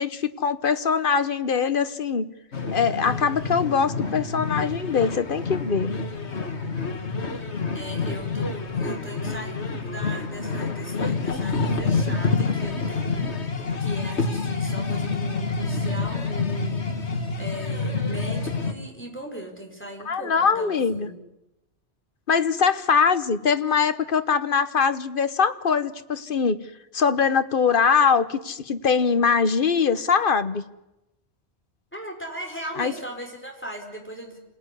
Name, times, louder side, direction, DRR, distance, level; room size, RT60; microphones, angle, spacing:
voice 1, 0.0-2.3 2.7-5.9 20.1-21.1 22.3-26.6 26.9-30.7 32.8-32.9, left 6 dB, 55° left, 11 dB, 1.2 m, -22 dB
sound 1, 2.5-18.7, left 4 dB, 80° left, 2.1 m, -27 dB
voice 2, 7.7-21.1 31.9-34.4, equal, 10° left, 1 dB, 4.5 m, -38 dB
27.0 x 18.0 x 9.9 m, 0.94 s
omnidirectional pair, 1.1 m